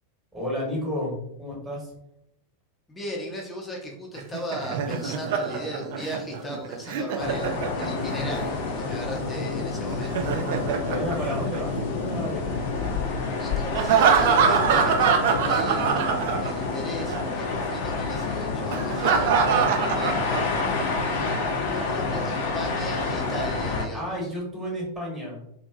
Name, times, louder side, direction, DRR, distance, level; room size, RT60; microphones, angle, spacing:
voice 1, 0.3-1.9 10.8-12.6 21.0-21.4 23.9-25.4, left 1 dB, 5° right, -4 dB, 1.1 m, -32 dB
voice 2, 2.9-10.3 13.4-20.8 21.6-24.2, equal, 10° left, -1 dB, 0.7 m, -36 dB
Laughter, 4.2-8.2 9.9-12.0 13.7-16.8 17.1-17.2 18.7-20.8, right 6 dB, 50° right, 0.3 m, -24 dB
sound 1, 7.2-23.8, left 4 dB, 50° left, 0.4 m, -28 dB
2.7 x 2.5 x 2.3 m, 0.78 s
figure-of-eight pair, 90°, 0 cm